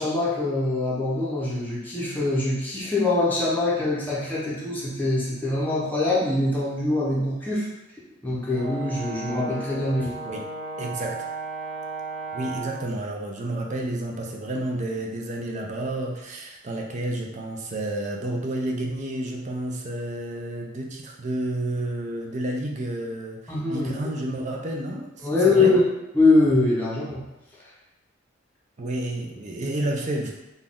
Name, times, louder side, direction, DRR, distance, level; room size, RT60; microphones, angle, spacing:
voice 1, 0.0-7.7 8.2-10.1 23.5-23.9 25.2-25.8 26.1-27.2, left 2 dB, 10° left, -7 dB, 0.7 m, -23 dB
Brass instrument, 8.5-12.9, right 3 dB, 65° right, 0.8 m, -35 dB
voice 2, 10.8-11.3 12.3-25.8 28.8-30.3, right 1 dB, 35° right, 1 dB, 0.5 m, -30 dB
4.0 x 2.3 x 3.6 m, 0.92 s
head